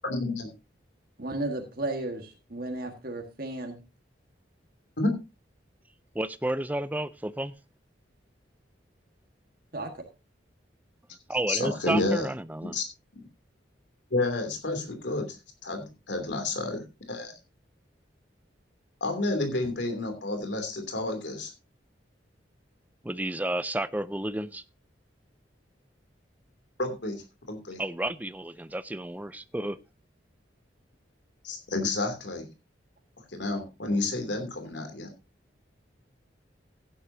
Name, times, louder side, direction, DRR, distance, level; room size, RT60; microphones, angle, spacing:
voice 1, 0.0-0.5 5.0-5.1 11.5-12.3 12.6-12.8 14.1-15.4 15.6-17.3 19.0-21.5 26.8-27.2 27.5-27.8 31.4-32.4 33.3-35.1, left 2 dB, 70° left, 3.0 m, -30 dB
voice 2, 1.2-3.8 9.7-9.9, right 2 dB, 50° right, 1.7 m, -34 dB
voice 3, 6.1-7.5 11.3-12.8 23.0-24.6 27.8-29.8, right 1 dB, 10° right, 0.5 m, -31 dB
15.5 x 10.5 x 2.8 m
head